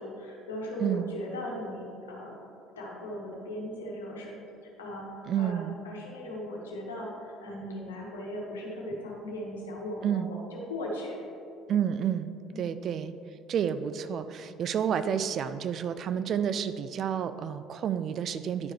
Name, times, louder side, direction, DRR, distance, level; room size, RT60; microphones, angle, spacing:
voice 1, 0.0-2.4 2.8-4.3 4.6-11.2 12.5-12.7, left 1 dB, 85° left, -3 dB, 1.3 m, -38 dB
voice 2, 5.3-5.8 10.0-10.3 11.7-12.3 12.6-13.1 13.5-18.7, right 8 dB, 50° right, 12 dB, 0.3 m, -30 dB
10.5 x 4.7 x 3.1 m, 2.6 s
hypercardioid pair, 60°, 0 cm